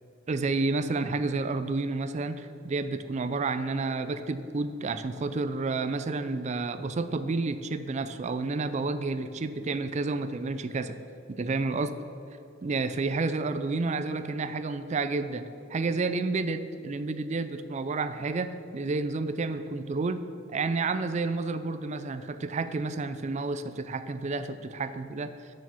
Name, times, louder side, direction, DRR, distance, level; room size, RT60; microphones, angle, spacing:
voice 1, 0.3-11.0 11.3-11.9 12.6-20.2 20.5-25.3, right 3 dB, 35° right, 11 dB, 0.4 m, -30 dB
7.0 x 6.3 x 6.1 m, 2.7 s
head